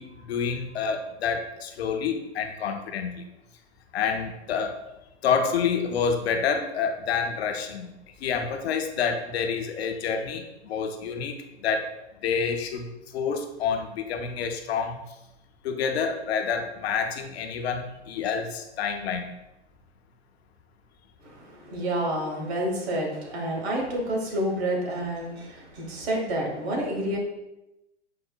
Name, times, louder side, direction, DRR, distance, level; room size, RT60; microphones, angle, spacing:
voice 1, 0.0-3.3 3.9-4.8 5.2-7.9 8.2-11.9 12.2-12.9 13.1-15.0 15.6-19.4, left 6 dB, 65° left, 5 dB, 0.5 m, -28 dB
voice 2, 21.2-27.2, right 1 dB, 65° right, 0 dB, 1.1 m, -29 dB
4.7 x 2.1 x 2.2 m, 0.93 s
hypercardioid pair, 110°, 35 cm